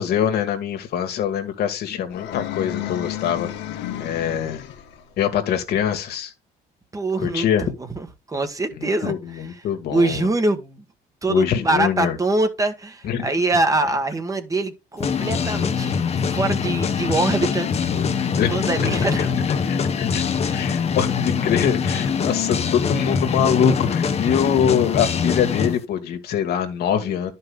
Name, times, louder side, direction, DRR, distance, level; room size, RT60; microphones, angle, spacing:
voice 1, 0.0-4.6 5.2-6.3 7.2-7.8 8.8-10.3 11.3-12.2 13.0-13.3 17.9-18.0 18.4-18.9 19.1-19.3 19.7-20.2 20.5-27.3, left 8 dB, 70° left, 1.9 m, -24 dB
sound 1, 2.1-5.0, left 12 dB, 90° left, 1.5 m, -31 dB
voice 2, 6.9-9.1 9.9-10.8 11.2-17.9 18.5-19.5, right 2 dB, 20° right, 1.4 m, -24 dB
sound 2, 15.0-25.8, left 6 dB, 40° left, 1.0 m, -23 dB
11.0 x 5.5 x 3.6 m
cardioid pair, 110°, 17 cm